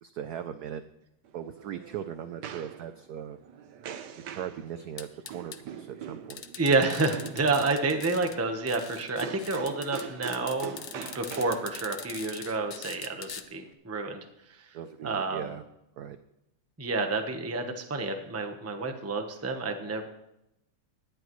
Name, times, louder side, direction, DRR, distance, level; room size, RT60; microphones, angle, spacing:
voice 1, 0.0-0.8 1.3-3.4 4.3-6.4 14.7-15.6 16.0-16.2, right 9 dB, 80° right, 10 dB, 0.9 m, -39 dB
sound 1, 1.2-13.7, right 9 dB, 65° right, 1.2 m, -44 dB
sound 2, 5.0-5.6 6.3-8.4 8.7-13.4, left 8 dB, 65° left, 0.8 m, -42 dB
voice 2, 6.6-14.2 15.0-15.5 16.8-20.1, right 3 dB, 15° right, 5 dB, 0.5 m, -29 dB
18.5 x 11.0 x 3.1 m, 0.85 s
omnidirectional pair, 2.3 m